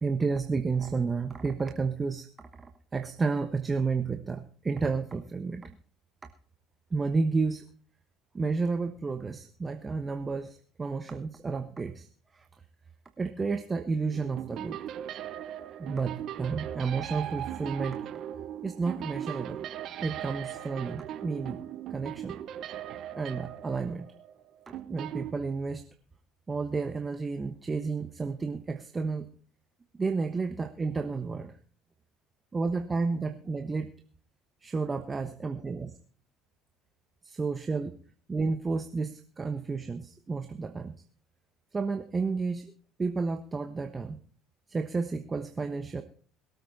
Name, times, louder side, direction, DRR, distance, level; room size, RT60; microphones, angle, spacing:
voice 1, 0.0-2.3 2.9-5.7 6.9-7.6 8.3-12.1 13.2-14.8 15.8-18.0 18.6-19.6 20.0-21.6 21.9-22.4 23.2-24.1 24.7-25.8 26.5-29.3 30.0-31.5 32.5-33.9 34.6-36.0 37.2-37.9 38.3-41.0 41.7-42.7 43.0-44.2 44.7-46.0, right 4 dB, 25° right, 7 dB, 1.2 m, -31 dB
sound 1, 14.1-25.3, right 11 dB, 60° right, 1.0 m, -39 dB
22.0 x 8.4 x 4.1 m, 0.43 s
supercardioid pair, 85°, 0 cm